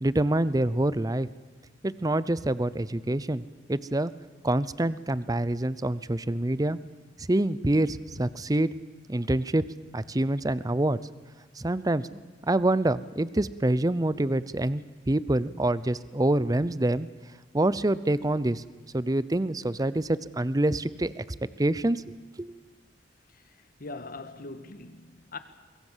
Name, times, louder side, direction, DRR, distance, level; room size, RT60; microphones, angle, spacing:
voice 1, 0.0-1.3 1.8-3.4 3.7-4.1 4.4-6.8 7.2-8.7 9.1-9.6 9.9-11.0 11.6-12.2 12.5-17.1 17.5-18.6 18.9-21.2 21.6-22.0 22.4-22.5, right 1 dB, 20° right, 0.7 m, -26 dB
voice 2, 23.3-25.4, left 3 dB, 50° left, 1.7 m, -42 dB
23.0 x 23.0 x 7.4 m
head